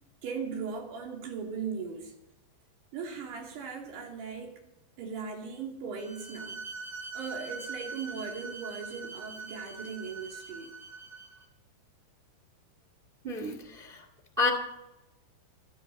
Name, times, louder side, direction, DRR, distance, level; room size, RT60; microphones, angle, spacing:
voice 1, 0.2-2.1 2.9-4.6 5.0-6.6 7.1-10.7, right 5 dB, 70° right, 0 dB, 4.7 m, -38 dB
Bowed string instrument, 6.0-11.5, right 3 dB, 45° right, 2.4 m, -42 dB
voice 2, 13.2-14.0 14.4-14.5, left 3 dB, 25° right, 3 dB, 1.0 m, -30 dB
28.0 x 9.4 x 4.1 m, 0.92 s
omnidirectional pair, 5.0 m